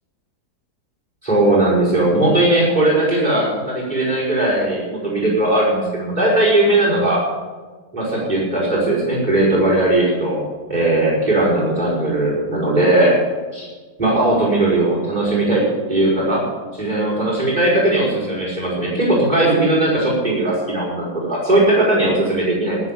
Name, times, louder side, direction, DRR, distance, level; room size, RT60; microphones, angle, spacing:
voice 1, 1.2-7.2 7.9-10.4 10.7-13.2 13.5-13.7 14.0-16.4 16.7-22.8, right 1 dB, 25° right, -5 dB, 5.6 m, -18 dB
18.5 x 7.7 x 7.4 m, 1.4 s
omnidirectional pair, 1.7 m